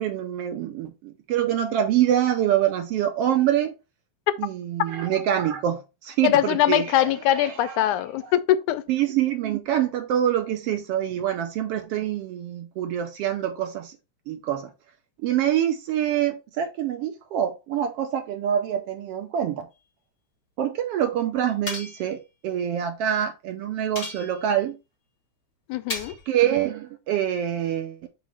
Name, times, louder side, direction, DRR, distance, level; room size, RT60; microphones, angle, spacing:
voice 1, 0.0-3.7 4.4-7.9 8.2-8.3 8.9-14.0 14.3-14.7 15.2-19.7 20.6-24.8 26.3-28.1, right 10 dB, 80° right, 1.4 m, -25 dB
voice 2, 6.2-8.8 25.7-26.1, left 13 dB, 85° left, 2.1 m, -22 dB
sound 1, 21.7-22.1 23.9-24.6 25.9-26.3, left 3 dB, 25° left, 1.4 m, -34 dB
6.0 x 3.0 x 5.6 m
omnidirectional pair, 3.4 m